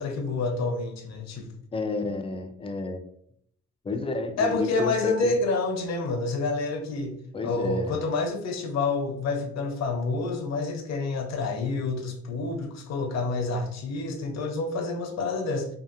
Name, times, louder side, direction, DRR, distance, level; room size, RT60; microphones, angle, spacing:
voice 1, 0.0-1.5 4.4-7.1 7.4-15.7, left 3 dB, 60° left, 6 dB, 0.6 m, -28 dB
voice 2, 1.7-3.0 3.8-5.3 7.3-8.0, left 3 dB, 20° left, 7 dB, 0.3 m, -31 dB
2.7 x 2.4 x 2.4 m, 0.69 s
cardioid pair, 90°, 30 cm